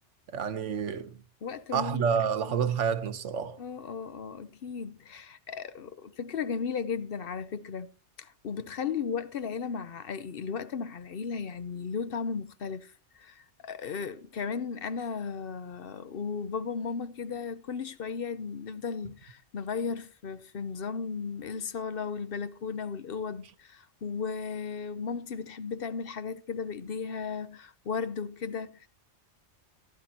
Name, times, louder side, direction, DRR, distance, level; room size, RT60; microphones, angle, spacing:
voice 1, 0.3-1.2 1.7-3.6, right 7 dB, 85° right, 1.3 m, -29 dB
voice 2, 1.4-2.1 2.6-2.7 3.6-7.9 8.2-28.9, left 6 dB, 55° left, 0.9 m, -35 dB
15.5 x 12.5 x 2.9 m
omnidirectional pair, 1.2 m